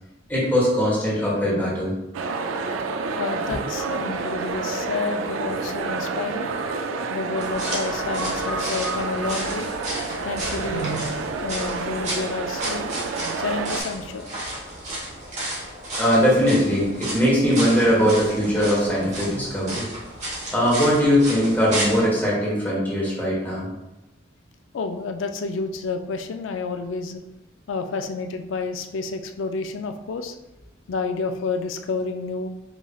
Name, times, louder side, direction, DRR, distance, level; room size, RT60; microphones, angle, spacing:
voice 1, 0.3-1.9 7.7-7.8 8.0-9.3 16.0-19.9 20.5-23.7, equal, 10° left, -6 dB, 1.3 m, -21 dB
sound 1, 2.1-13.8, right 4 dB, 75° right, 0.3 m, -29 dB
voice 2, 3.2-6.5 7.1-9.7 10.2-11.0 11.4-12.9 13.4-14.3 24.7-27.2 27.7-30.3 30.9-32.5, left 4 dB, 70° left, 7 dB, 0.4 m, -30 dB
sound 2, 7.4-22.0, right 1 dB, 35° right, 1.1 m, -33 dB
5.2 x 3.1 x 2.3 m, 0.96 s
head